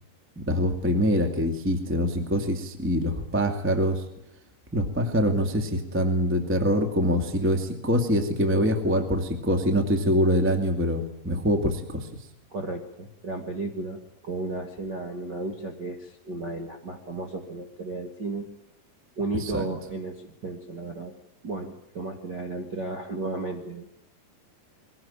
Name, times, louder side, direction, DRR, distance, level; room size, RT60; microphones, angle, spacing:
voice 1, 0.3-4.0 4.7-12.1 19.4-19.6, equal, 10° right, 6 dB, 0.5 m, -24 dB
voice 2, 12.5-18.5 19.2-21.1 21.4-23.8, right 2 dB, 55° right, 0 dB, 1.1 m, -34 dB
22.5 x 17.5 x 8.9 m, 0.77 s
omnidirectional pair, 5.3 m